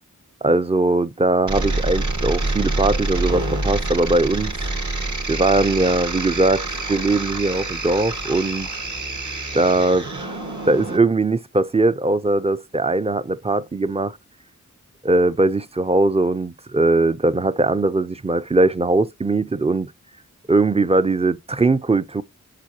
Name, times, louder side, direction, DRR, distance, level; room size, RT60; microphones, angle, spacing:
voice 1, 0.4-4.5 5.3-8.7 9.5-14.2 15.0-19.9 20.5-22.2, right 2 dB, 20° right, 0.4 m, -20 dB
sound 1, 1.5-11.0, right 2 dB, 70° right, 2.1 m, -26 dB
7.5 x 6.4 x 2.8 m
wide cardioid pair, 75°, 31 cm